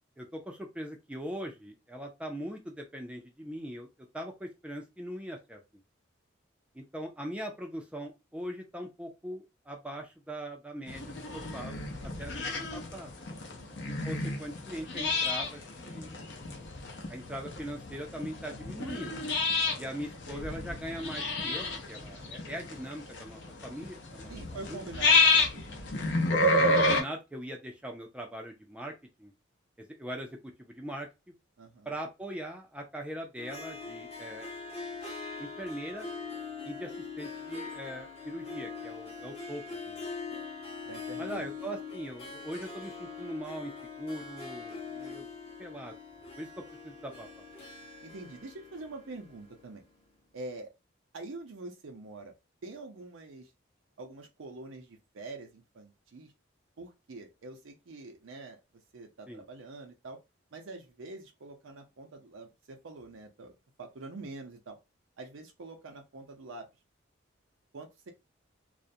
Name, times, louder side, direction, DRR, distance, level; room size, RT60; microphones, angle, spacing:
voice 1, 0.2-3.9 4.1-5.6 6.7-11.8 12.0-13.1 14.0-16.2 17.1-19.2 19.8-24.3 24.6-25.0 26.6-28.9 29.2-29.3 29.8-31.1 31.9-34.5 35.4-36.1 36.6-36.9 37.2-40.0 41.2-45.3 45.6-45.9 46.4-47.3 59.3-59.4, equal, 5° right, 0.4 m, -41 dB
sound 1, 10.9-27.0, left 2 dB, 65° left, 0.6 m, -30 dB
voice 2, 13.6-13.9 19.7-19.8 24.3-25.9 31.6-32.0 40.8-41.5 48.0-49.8 50.3-50.7 51.1-52.3 52.6-53.5 54.0-56.3 56.8-58.6 58.9-60.2 60.5-63.5 63.8-64.8 65.2-66.7 67.7-68.1, right 2 dB, 85° right, 0.5 m, -45 dB
Harp, 33.4-49.9, left 4 dB, 30° left, 0.7 m, -42 dB
2.4 x 2.1 x 2.6 m
head